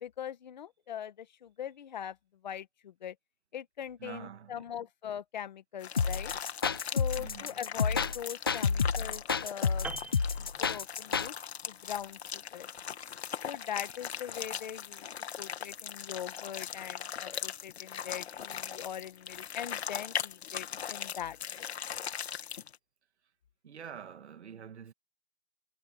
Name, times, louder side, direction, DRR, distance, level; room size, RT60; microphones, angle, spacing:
voice 1, 0.0-2.2 2.4-3.1 3.5-6.3 6.9-9.9 10.4-11.3 11.6-12.7 13.4-15.1 15.4-21.7, left 9 dB, 45° left, 1.5 m, -41 dB
voice 2, 4.0-4.7 7.2-7.6 23.6-24.9, right 7 dB, 80° right, 2.3 m, -46 dB
sound 1, 5.8-22.8, left 8 dB, 70° left, 2.2 m, -40 dB
sound 2, 6.0-11.3, left 5 dB, 20° left, 0.5 m, -29 dB
Piano, 9.8-11.3 11.6-11.8, right 3 dB, 5° right, 1.5 m, -43 dB
hypercardioid pair, 180°, 33 cm